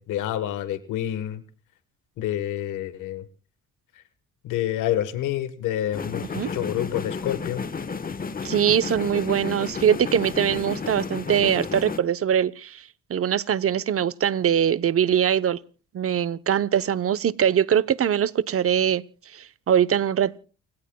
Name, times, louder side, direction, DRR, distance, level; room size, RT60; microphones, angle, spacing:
voice 1, 0.0-1.4 2.2-3.2 4.4-7.7 8.7-8.8, left 12 dB, 90° left, 1.4 m, -28 dB
sound 1, 5.9-12.0, left 5 dB, 30° left, 1.2 m, -32 dB
voice 2, 8.4-12.8 13.1-15.6 15.9-19.0 19.3-20.4, right 9 dB, 50° right, 0.8 m, -22 dB
29.5 x 17.5 x 2.3 m
cardioid pair, 90°, 30 cm